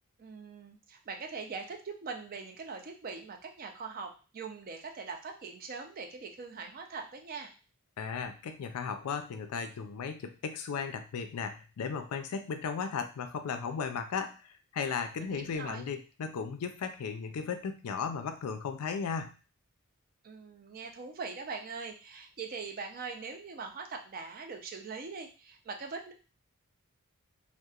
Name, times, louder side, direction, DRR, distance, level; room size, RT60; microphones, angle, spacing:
voice 1, 0.2-7.5 15.2-15.9 20.2-26.1, right 4 dB, 40° right, 3 dB, 0.4 m, -42 dB
voice 2, 8.0-19.3, left 6 dB, 90° left, 8 dB, 0.4 m, -36 dB
2.8 x 2.1 x 2.3 m, 0.34 s
head